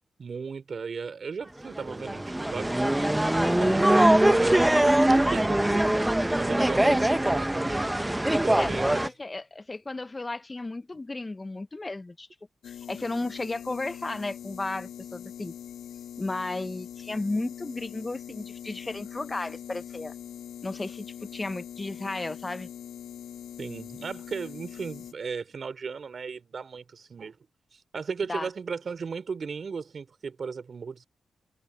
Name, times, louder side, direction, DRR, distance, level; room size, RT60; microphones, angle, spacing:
voice 1, 0.2-5.8 6.3-7.8 8.4-9.0 23.6-27.4 27.9-31.1, right 5 dB, 55° right, 4.3 m, -36 dB
sound 1, 1.8-9.1, right 1 dB, 10° right, 0.9 m, -22 dB
voice 2, 3.4-3.8 8.3-12.3 12.6-15.5 16.2-20.1 20.6-22.7 28.3-28.5, left 2 dB, 25° left, 0.8 m, -34 dB
sound 2, 12.6-25.1, left 9 dB, 90° left, 2.2 m, -42 dB
cardioid pair, 60°, 0 cm